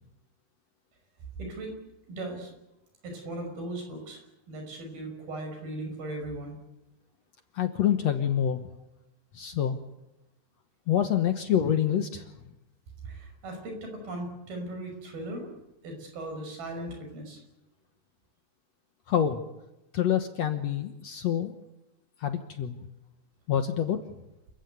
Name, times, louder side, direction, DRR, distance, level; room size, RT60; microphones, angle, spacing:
voice 1, 1.4-1.8 2.1-2.5 3.0-6.6 13.0-15.5 15.8-17.4, right 1 dB, 70° right, 4 dB, 7.7 m, -38 dB
voice 2, 7.5-8.6 9.3-9.8 10.9-12.2 19.1-19.4 19.9-21.5 22.2-22.8 23.5-24.0, left 9 dB, 65° left, 8 dB, 1.8 m, -26 dB
28.5 x 15.5 x 9.4 m, 0.92 s
omnidirectional pair, 4.5 m